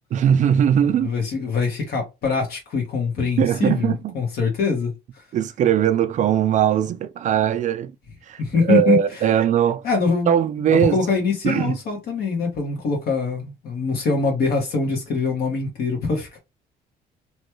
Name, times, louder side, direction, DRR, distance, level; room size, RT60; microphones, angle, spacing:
voice 1, 0.1-1.1 3.4-4.0 5.3-7.9 8.3-9.9 10.3-11.0 11.4-11.8, right 9 dB, 45° right, 0.4 m, -20 dB
voice 2, 1.0-5.0 8.4-9.0 9.8-10.3 10.6-16.4, left 4 dB, 65° left, 1.3 m, -23 dB
3.0 x 2.3 x 3.0 m
cardioid pair, 110°, 17 cm